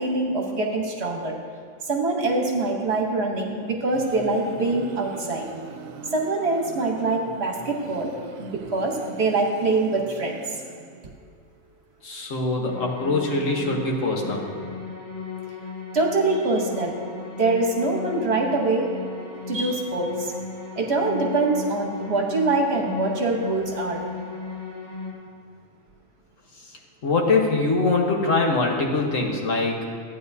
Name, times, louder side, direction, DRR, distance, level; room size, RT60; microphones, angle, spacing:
voice 1, 0.0-1.4 1.8-5.5 6.1-8.1 8.4-10.4 15.9-17.0 17.4-18.9 19.5-20.3 20.8-24.0, right 2 dB, 55° right, 0 dB, 1.3 m, -24 dB
sound 1, 3.6-11.3, right 5 dB, 85° right, 1.0 m, -41 dB
voice 2, 12.0-14.4 26.7-29.8, left 3 dB, 70° left, 0 dB, 1.6 m, -23 dB
sound 2, 12.6-25.1, left 4 dB, 35° left, 2.4 m, -36 dB
14.0 x 9.3 x 2.7 m, 2.2 s
omnidirectional pair, 1.4 m